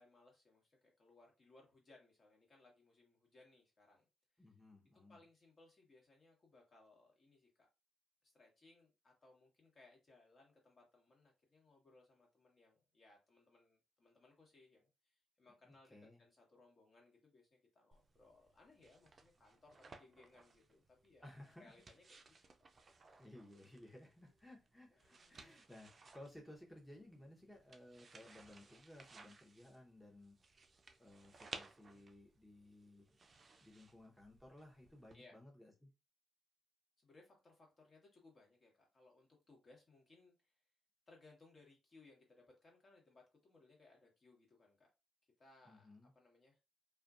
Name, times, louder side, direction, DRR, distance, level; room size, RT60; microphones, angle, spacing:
voice 1, 0.0-4.1 4.4-4.5 5.1-7.7 8.2-21.3 21.6-22.3 24.9-25.5 31.8-32.1 35.1-35.4 37.0-40.6 41.1-44.9 45.4-46.6, left 2 dB, 45° left, 0 dB, 1.3 m, -66 dB
voice 2, 4.4-5.2 15.6-16.2 21.2-21.7 23.2-30.4 31.0-33.1 33.6-35.9 45.6-46.1, left 1 dB, 10° left, -1 dB, 0.8 m, -58 dB
sound 1, 17.9-35.1, right 3 dB, 45° right, 0.4 m, -60 dB
2.4 x 2.2 x 2.4 m, 0.26 s
hypercardioid pair, 45°, 0 cm